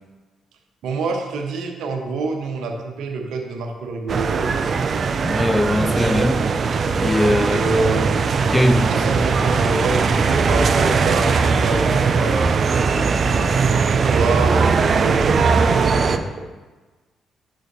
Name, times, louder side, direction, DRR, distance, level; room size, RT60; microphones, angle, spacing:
voice 1, 0.8-4.8 7.4-13.5 14.0-16.3, right 3 dB, 75° right, 1.0 m, -26 dB
sound 1, 4.1-16.2, right 5 dB, 55° right, 0.5 m, -19 dB
voice 2, 5.2-6.4 7.0-7.8 8.4-8.9, left 1 dB, 15° left, 0.5 m, -20 dB
9.0 x 6.4 x 2.7 m
hypercardioid pair, 50°, 0 cm